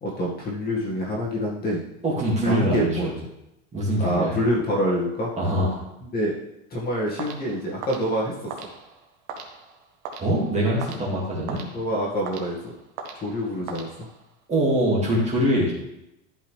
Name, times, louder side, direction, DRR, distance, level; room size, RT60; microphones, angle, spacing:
voice 1, 0.0-1.8 2.4-3.1 4.0-5.3 6.1-6.3 6.7-8.7 11.7-12.7 13.2-13.9, equal, 25° left, -4 dB, 2.0 m, -26 dB
voice 2, 2.0-3.1 3.7-4.3 5.4-5.8 10.2-11.6 14.5-15.7, equal, 15° right, -4 dB, 2.3 m, -23 dB
sound 1, 7.2-14.4, right 5 dB, 60° right, 1.6 m, -41 dB
12.5 x 5.5 x 3.4 m, 0.86 s
supercardioid pair, 150°, 39 cm